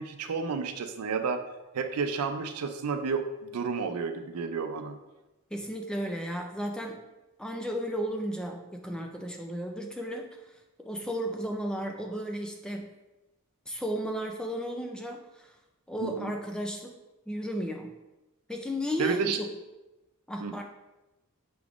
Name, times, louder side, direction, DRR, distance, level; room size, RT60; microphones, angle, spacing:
voice 1, 0.0-1.4 1.7-4.9 16.0-16.3 19.0-19.4 20.4-20.5, right 5 dB, 80° right, 7 dB, 0.4 m, -31 dB
voice 2, 5.5-7.0 7.4-10.4 10.8-12.9 13.7-15.5 15.9-17.0 17.3-17.9 18.5-19.5 20.3-20.6, equal, 5° left, 2 dB, 0.4 m, -34 dB
6.0 x 3.5 x 2.4 m, 1.0 s
head